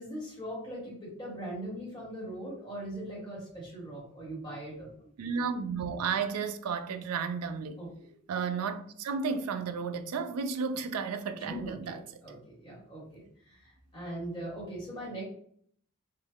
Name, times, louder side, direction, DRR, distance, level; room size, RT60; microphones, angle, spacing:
voice 1, 0.0-5.1 7.8-8.1 11.3-15.2, right 1 dB, 20° left, 1.1 m, -40 dB
voice 2, 5.2-7.8 8.3-12.0, right 5 dB, 80° right, 0.4 m, -33 dB
3.2 x 2.1 x 3.5 m
head